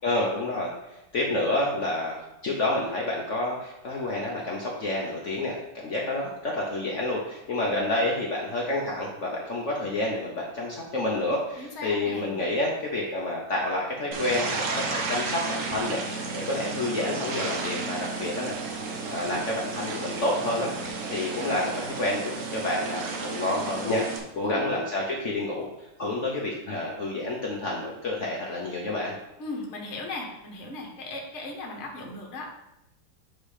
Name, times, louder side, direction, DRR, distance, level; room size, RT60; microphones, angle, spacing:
voice 1, 0.0-18.5 19.1-24.0 24.4-25.7 26.0-29.1, left 2 dB, 65° left, -2 dB, 0.7 m, -29 dB
voice 2, 11.6-12.3 24.4-24.8 29.4-32.5, left 2 dB, 40° left, 0 dB, 1.2 m, -37 dB
sound 1, 14.1-24.2, right 4 dB, 60° right, 0.8 m, -33 dB
7.9 x 3.2 x 4.9 m, 0.89 s
omnidirectional pair, 2.3 m